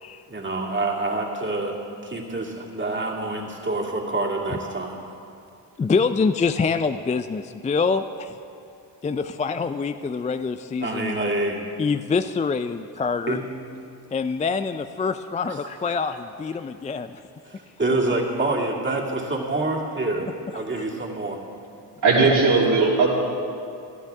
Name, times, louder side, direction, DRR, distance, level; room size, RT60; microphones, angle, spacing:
voice 1, 0.3-5.0 10.8-11.6 13.3-13.4 15.4-15.6 15.9-16.0 17.5-20.3 20.5-21.4, right 2 dB, 25° right, -1 dB, 2.6 m, -27 dB
voice 2, 5.8-8.3 9.0-11.2 11.8-13.4 14.1-17.2, left 5 dB, 15° left, 10 dB, 0.4 m, -25 dB
voice 3, 22.0-23.1, right 3 dB, 60° right, -6 dB, 3.2 m, -17 dB
19.0 x 12.5 x 3.6 m, 2.5 s
supercardioid pair, 60°, 47 cm